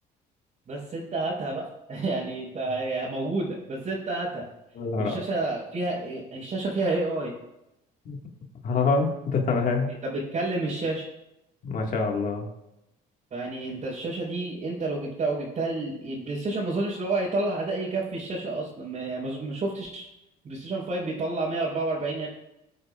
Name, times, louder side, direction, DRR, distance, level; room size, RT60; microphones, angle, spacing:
voice 1, 0.7-4.5 5.0-7.3 10.0-11.0 13.3-20.1 20.4-22.3, right 2 dB, 45° right, -6 dB, 4.4 m, -30 dB
voice 2, 4.8-5.1 8.1-8.2 8.6-9.9 11.6-12.5, left 4 dB, 55° left, 1 dB, 1.9 m, -25 dB
21.0 x 8.9 x 2.5 m, 0.88 s
cardioid pair, 110°, 17 cm